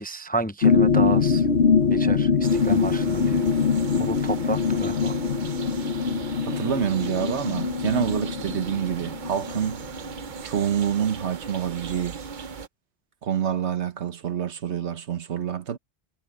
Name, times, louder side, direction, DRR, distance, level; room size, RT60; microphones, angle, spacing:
voice 1, 0.0-1.5 1.9-3.4 4.0-5.2, right 2 dB, 10° left, 0.5 m, -31 dB
sound 1, 0.6-9.8 10.2-10.3, left 5 dB, 70° left, 1.4 m, -23 dB
sound 2, 2.4-12.7, right 5 dB, 50° right, 0.9 m, -37 dB
voice 2, 6.4-9.8 10.4-12.2 13.2-15.8, right 8 dB, 90° right, 1.4 m, -27 dB
omnidirectional pair, 1.1 m